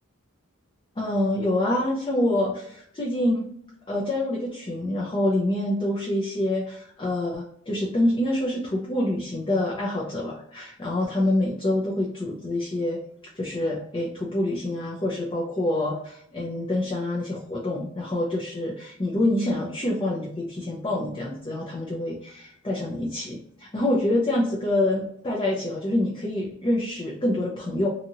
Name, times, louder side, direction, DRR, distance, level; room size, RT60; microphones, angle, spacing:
voice 1, 1.0-3.5 3.9-13.0 13.4-27.9, left 1 dB, 25° left, -2 dB, 0.5 m, -26 dB
2.9 x 2.7 x 2.5 m, 0.69 s
head